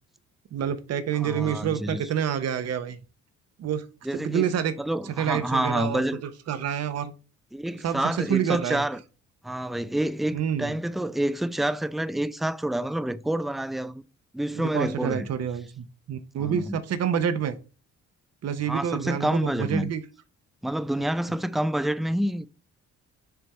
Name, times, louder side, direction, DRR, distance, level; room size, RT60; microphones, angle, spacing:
voice 1, 0.5-3.0 3.6-3.8 4.1-4.7 5.2-7.1 7.8-8.8 10.3-10.7 14.6-17.6 18.4-20.0, right 8 dB, 55° right, 0.8 m, -28 dB
voice 2, 1.1-2.0 4.0-4.5 4.8-6.2 7.5-9.0 9.4-14.0 14.3-15.3 16.4-16.8 18.7-19.9 20.6-22.5, right 1 dB, ahead, 0.4 m, -28 dB
6.9 x 3.4 x 4.2 m
cardioid pair, 90°, 30 cm